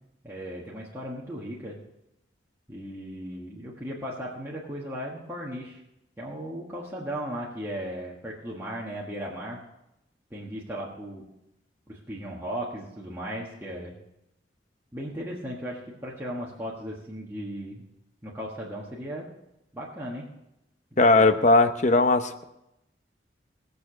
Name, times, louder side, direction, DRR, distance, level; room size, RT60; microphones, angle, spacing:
voice 1, 0.2-1.8 2.7-5.8 6.2-9.6 10.3-11.2 11.9-13.9 14.9-17.8 18.2-19.3 19.7-20.2 20.9-21.4, equal, 15° right, -5 dB, 1.5 m, -36 dB
voice 2, 21.0-22.4, left 2 dB, 40° left, 8 dB, 0.8 m, -19 dB
18.0 x 6.8 x 6.3 m, 0.87 s
head